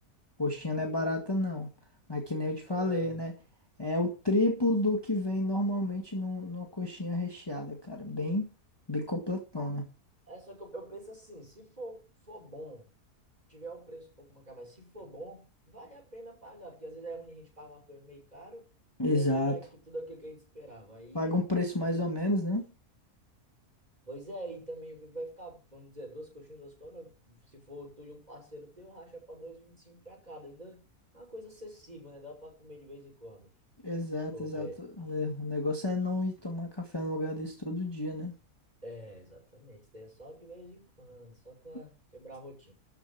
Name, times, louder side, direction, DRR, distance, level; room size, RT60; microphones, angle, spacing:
voice 1, 0.4-1.7 2.1-3.3 3.8-8.5 8.9-9.8 19.0-19.6 21.1-22.6 33.8-38.3, left 1 dB, 15° left, 1.8 m, -31 dB
voice 2, 2.7-3.2 10.3-12.9 13.5-18.7 19.1-21.4 21.8-22.1 24.1-30.8 31.1-33.5 34.3-34.8 38.8-42.7, right 1 dB, 25° right, 6.3 m, -46 dB
13.0 x 7.1 x 5.8 m
omnidirectional pair, 1.6 m